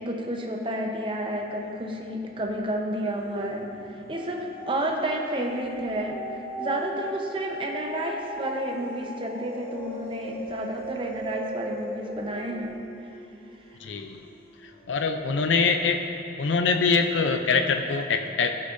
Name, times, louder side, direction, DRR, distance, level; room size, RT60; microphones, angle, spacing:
voice 1, 0.0-6.2 6.6-12.8, right 1 dB, 30° right, 1 dB, 0.8 m, -31 dB
sound 1, 1.7-2.3 2.6-15.1 15.6-15.7, equal, 30° left, 1.4 m, -39 dB
voice 2, 13.8-14.2 14.6-16.0 16.4-18.5, left 4 dB, 85° left, 6 dB, 0.4 m, -24 dB
14.5 x 7.4 x 2.6 m, 2.7 s
head